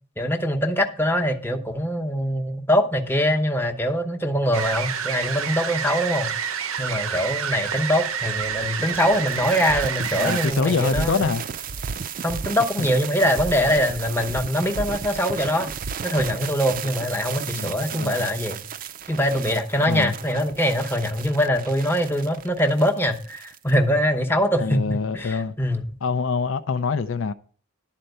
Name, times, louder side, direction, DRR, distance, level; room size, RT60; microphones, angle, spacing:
voice 1, 0.2-6.3 6.8-11.3 12.2-15.7 16.0-18.6 19.1-25.9, equal, 10° left, 0.9 m, -23 dB
sound 1, 4.5-10.5, right 8 dB, 90° right, 0.7 m, -29 dB
sound 2, 8.5-23.7, right 6 dB, 40° right, 0.4 m, -34 dB
voice 2, 10.1-11.4 12.8-12.9 17.4-18.3 19.8-20.1 24.6-25.5 26.0-27.3, left 5 dB, 70° left, 0.5 m, -25 dB
11.5 x 4.4 x 8.0 m
head